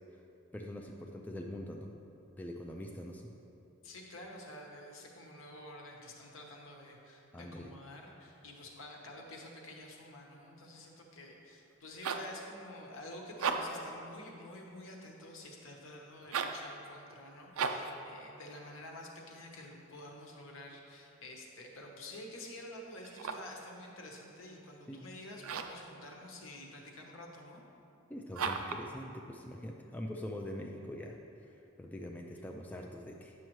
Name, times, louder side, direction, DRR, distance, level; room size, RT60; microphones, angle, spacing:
voice 1, 0.5-1.9 2.4-3.2 7.3-7.7 24.9-25.1 28.1-31.2 31.5-33.3, left 1 dB, 10° left, 1 dB, 0.3 m, -43 dB
voice 2, 3.8-27.6, left 1 dB, 65° left, 0 dB, 1.0 m, -49 dB
sound 1, 11.7-12.4 13.3-13.9 16.2-16.7 17.5-18.0 23.0-23.6 25.4-25.9 28.3-28.9, right 5 dB, 85° right, 0.5 m, -35 dB
9.3 x 6.3 x 3.1 m, 2.7 s
head